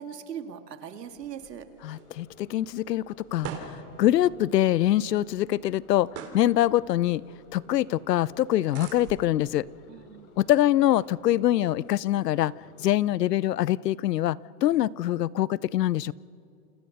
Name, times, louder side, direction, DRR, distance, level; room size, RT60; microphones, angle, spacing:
voice 1, 0.0-1.6 9.9-10.3, right 8 dB, 90° right, 7 dB, 2.5 m, -40 dB
sound 1, 1.0-12.4, right 6 dB, 30° right, 3.6 m, -47 dB
voice 2, 1.8-6.1 6.3-7.2 7.5-9.7 10.4-12.5 12.8-16.1, left 13 dB, 90° left, 22 dB, 0.7 m, -24 dB
sound 2, 1.8-13.0, left 2 dB, 55° left, 5.8 m, -54 dB
29.0 x 27.5 x 6.5 m, 2.7 s
hypercardioid pair, 135°, 47 cm